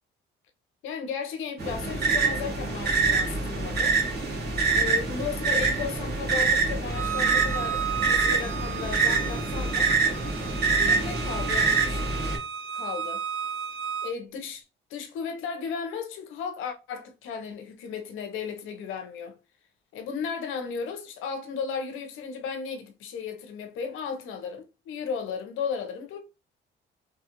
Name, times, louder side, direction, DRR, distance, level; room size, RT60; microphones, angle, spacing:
voice 1, 0.8-4.0 4.7-9.9 10.7-12.1 12.7-13.2 14.0-14.6 14.9-19.4 19.9-26.2, left 6 dB, 90° left, 0.7 m, -35 dB
sound 1, 1.6-12.4, right 4 dB, 55° right, 1.4 m, -25 dB
Bowed string instrument, 6.9-14.1, right 7 dB, 75° right, 0.6 m, -34 dB
3.3 x 2.3 x 2.9 m
cardioid pair, 90°, 20 cm